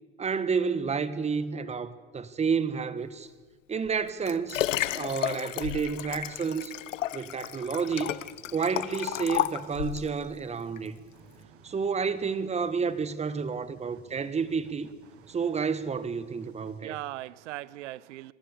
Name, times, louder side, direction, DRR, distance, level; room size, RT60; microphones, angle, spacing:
voice 1, 0.2-3.3 3.7-4.6 4.9-6.7 7.1-8.2 8.5-11.0 11.6-14.9 15.3-17.0, right 5 dB, 15° right, 1.2 m, -30 dB
Liquid, 3.8-10.1 10.8-10.9, left 13 dB, 80° left, 0.8 m, -32 dB
sound 1, 7.7-16.8, right 4 dB, 35° right, 7.3 m, -57 dB
voice 2, 11.1-11.8 15.1-15.4 16.8-18.3, right 16 dB, 70° right, 0.8 m, -41 dB
26.5 x 13.0 x 8.2 m
hypercardioid pair, 90°, 38 cm